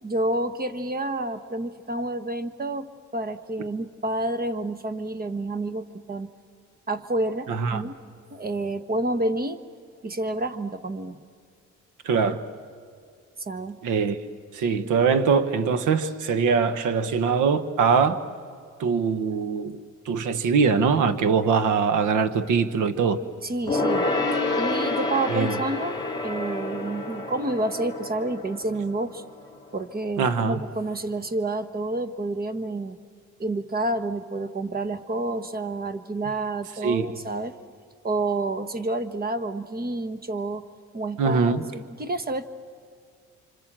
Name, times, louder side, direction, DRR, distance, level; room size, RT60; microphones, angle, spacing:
voice 1, 0.0-2.9 3.1-6.3 6.9-7.9 8.3-9.6 10.0-11.2 13.5-13.8 23.4-24.1 24.6-29.2 29.7-33.0 33.4-37.5 38.0-40.7 40.9-42.5, right 2 dB, 30° right, 11 dB, 1.3 m, -29 dB
voice 2, 7.5-7.8 12.0-12.4 13.8-14.2 14.5-18.2 18.8-19.8 20.0-23.2 25.3-25.5 30.2-30.6 36.8-37.1 41.2-41.6, right 5 dB, 80° right, 12 dB, 1.3 m, -22 dB
Gong, 23.7-29.6 29.8-29.9, left 2 dB, 15° left, 2.9 m, -28 dB
26.5 x 26.0 x 7.5 m, 2.3 s
cardioid pair, 90°, 30 cm